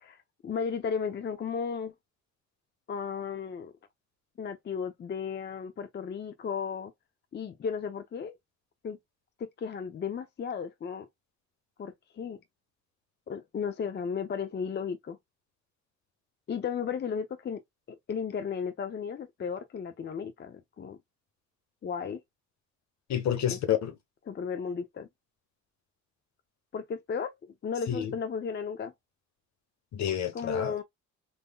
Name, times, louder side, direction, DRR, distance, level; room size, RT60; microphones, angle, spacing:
voice 1, 0.0-1.9 2.9-3.7 4.4-6.9 7.3-8.4 8.8-9.0 9.4-11.1 11.8-12.4 13.3-15.2 16.5-17.6 18.1-21.0 21.8-22.2 23.5-23.6 24.3-25.1 26.7-27.4 27.6-28.9 30.3-30.8, left 6 dB, 35° left, 0.6 m, -34 dB
voice 2, 23.1-23.9 27.9-28.1 29.9-30.7, left 10 dB, 65° left, 1.2 m, -29 dB
3.6 x 2.6 x 2.3 m
cardioid pair, 90°, 30 cm